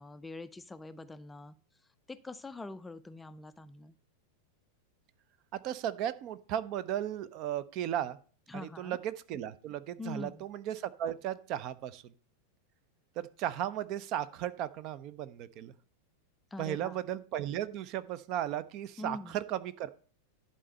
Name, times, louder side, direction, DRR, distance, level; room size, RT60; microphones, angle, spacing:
voice 1, 0.0-1.5 2.1-3.9 8.5-9.0 10.0-10.4 16.5-17.0 19.0-19.4, left 2 dB, 10° left, 12 dB, 0.4 m, -44 dB
voice 2, 5.5-8.2 8.5-12.1 13.2-15.7 16.6-19.9, right 11 dB, 40° right, 16 dB, 0.6 m, -35 dB
11.0 x 4.3 x 6.5 m, 0.41 s
figure-of-eight pair, 90°, 0 cm